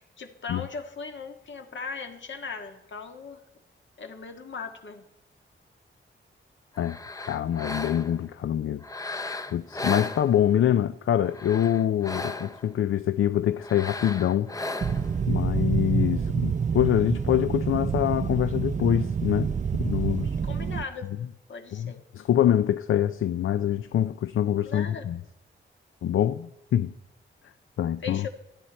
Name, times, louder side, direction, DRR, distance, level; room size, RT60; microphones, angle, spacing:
voice 1, 0.0-3.4 4.0-5.0 20.4-21.1 21.5-22.0 24.6-25.1 28.0-28.3, left 5 dB, 65° left, 1.7 m, -38 dB
sound 1, 6.8-8.3 8.8-10.7 11.2-12.7 13.6-15.2, left 2 dB, 15° left, 0.7 m, -36 dB
voice 2, 7.3-8.8 9.5-14.5 15.3-20.4 21.7-25.2 26.0-26.9 27.8-28.3, left 10 dB, 80° left, 0.5 m, -25 dB
sound 2, 14.8-20.8, right 6 dB, 35° right, 0.4 m, -27 dB
18.5 x 13.5 x 4.3 m
wide cardioid pair, 145°, 21 cm